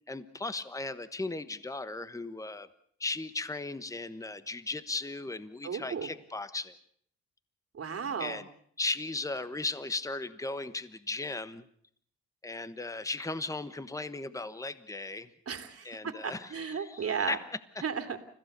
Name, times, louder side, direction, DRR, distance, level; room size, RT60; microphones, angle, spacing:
voice 1, 0.1-2.7 3.0-6.8 8.2-8.5 8.8-11.6 12.4-15.3 15.8-17.4 17.7-17.8, left 3 dB, 10° left, 13 dB, 1.2 m, -36 dB
voice 2, 5.6-6.1 7.7-8.4 15.5-16.0 16.2-17.4 17.8-18.2, right 6 dB, 50° right, 7 dB, 2.9 m, -34 dB
30.0 x 16.0 x 6.8 m, 0.64 s
cardioid pair, 90°, 30 cm